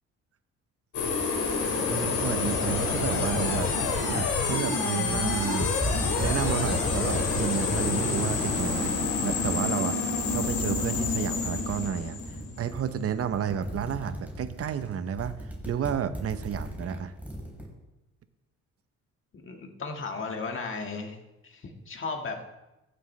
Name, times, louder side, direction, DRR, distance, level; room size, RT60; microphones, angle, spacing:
sound 1, 0.9-12.9, left 4 dB, 85° left, 2.3 m, -28 dB
voice 1, 1.8-3.7 4.1-5.7 6.2-10.0 10.3-12.2 12.6-15.3 15.7-17.1, right 8 dB, 50° right, 12 dB, 0.8 m, -31 dB
sound 2, 5.0-9.6 10.0-17.6, right 1 dB, 5° right, 4.1 m, -37 dB
voice 2, 19.4-21.2 21.4-22.4, left 4 dB, 40° left, 3 dB, 1.7 m, -35 dB
14.5 x 7.7 x 3.2 m, 0.98 s
cardioid pair, 90°, 30 cm